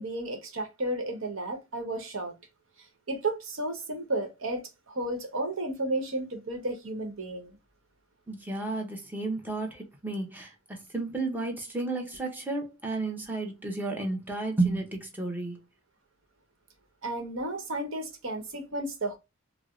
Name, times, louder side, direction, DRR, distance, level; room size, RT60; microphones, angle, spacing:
voice 1, 0.0-2.3 3.1-7.6 17.0-19.2, right 2 dB, 70° right, 0.9 m, -33 dB
voice 2, 8.3-15.6, right 2 dB, 10° right, 0.7 m, -32 dB
4.5 x 2.0 x 2.4 m
head